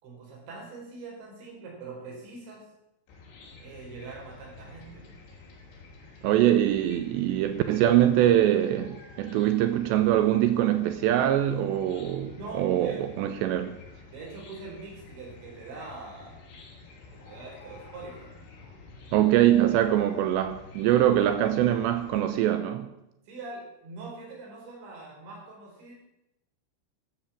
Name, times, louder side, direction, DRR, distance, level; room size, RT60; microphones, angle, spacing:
voice 1, 0.0-2.6 3.6-5.2 12.3-13.1 14.1-16.5 17.2-18.4 23.3-26.0, right 3 dB, 60° right, -2 dB, 7.2 m, -43 dB
Chicken rooster / Cricket, 3.1-22.2, left 3 dB, 70° left, 5.5 m, -49 dB
voice 2, 6.2-13.8 19.1-22.9, right 12 dB, 85° right, 10 dB, 2.6 m, -23 dB
13.5 x 11.5 x 7.3 m, 0.89 s
omnidirectional pair, 5.9 m